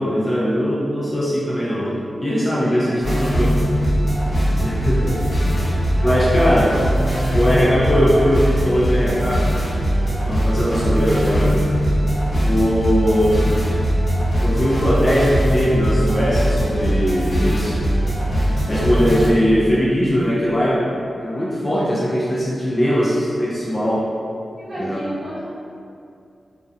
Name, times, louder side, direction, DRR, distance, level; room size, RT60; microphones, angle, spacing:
voice 1, 0.0-3.5 4.6-5.2 5.9-6.8 7.3-9.5 10.1-11.6 12.4-13.5 14.4-17.8 18.7-20.9 21.2-24.1 24.7-25.0, equal, 20° left, -7 dB, 0.4 m, -20 dB
voice 2, 2.2-3.2 4.8-5.1 5.8-6.7 24.6-25.5, equal, 55° right, -11 dB, 0.9 m, -34 dB
sound 1, 3.0-19.3, equal, 55° left, 0.8 m, -20 dB
2.3 x 2.2 x 2.5 m, 2.5 s
wide cardioid pair, 135°, 0 cm